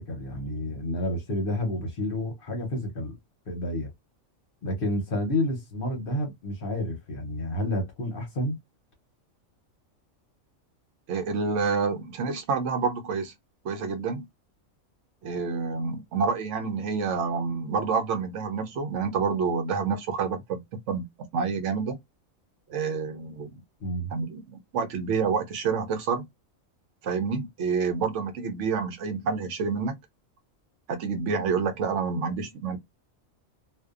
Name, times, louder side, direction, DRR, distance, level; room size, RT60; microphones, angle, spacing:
voice 1, 0.0-3.2 3.5-3.9 4.6-8.6 23.8-24.1, left 1 dB, 50° left, 0.8 m, -30 dB
voice 2, 11.1-13.3 13.6-14.2 15.2-21.1 21.3-22.0 22.7-23.5 24.1-26.3 27.0-30.0 30.9-32.8, right 5 dB, 65° right, 0.9 m, -28 dB
2.6 x 2.2 x 2.4 m
omnidirectional pair, 1.4 m